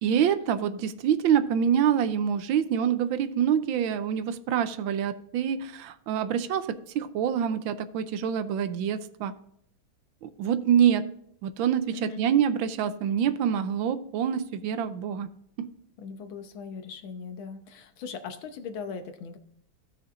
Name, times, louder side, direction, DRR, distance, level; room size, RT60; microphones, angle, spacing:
voice 1, 0.0-9.3 10.2-11.0 11.4-15.3 15.6-15.7, right 8 dB, 80° right, 12 dB, 1.4 m, -26 dB
voice 2, 11.9-12.2 16.0-19.4, left 5 dB, 80° left, 7 dB, 1.7 m, -39 dB
15.5 x 6.2 x 2.5 m, 0.71 s
omnidirectional pair, 2.2 m